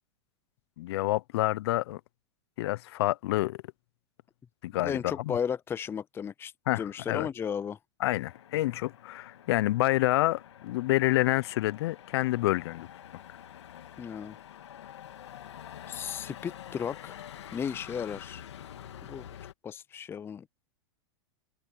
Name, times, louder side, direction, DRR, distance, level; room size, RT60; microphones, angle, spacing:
voice 1, 0.8-2.0 2.6-3.6 4.6-5.4 6.7-7.3 8.0-12.9, left 17 dB, 65° left, 0.8 m, -28 dB
voice 2, 4.8-7.8 14.0-14.4 15.9-17.2 17.5-18.4 19.1-19.2 19.6-20.5, left 7 dB, 15° left, 0.5 m, -34 dB
Motor vehicle (road), 8.3-19.5, left 10 dB, 85° left, 3.0 m, -47 dB
hypercardioid pair, 120°, 14 cm